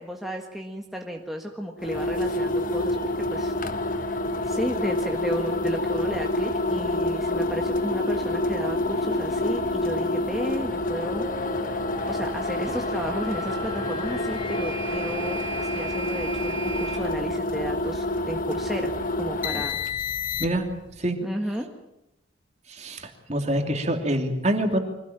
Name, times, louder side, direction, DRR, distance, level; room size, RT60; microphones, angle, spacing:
voice 1, 0.0-3.0 3.3-3.5 3.9-4.1 4.5-18.9 19.2-19.8 21.2-21.7, equal, ahead, 1 dB, 1.6 m, -33 dB
sound 1, 1.8-20.8, left 1 dB, 40° left, 1.3 m, -28 dB
sound 2, 7.3-17.0, right 1 dB, 25° left, 4.7 m, -38 dB
voice 2, 22.7-24.8, right 1 dB, 35° right, 4 dB, 2.8 m, -25 dB
24.5 x 17.5 x 9.1 m, 0.89 s
head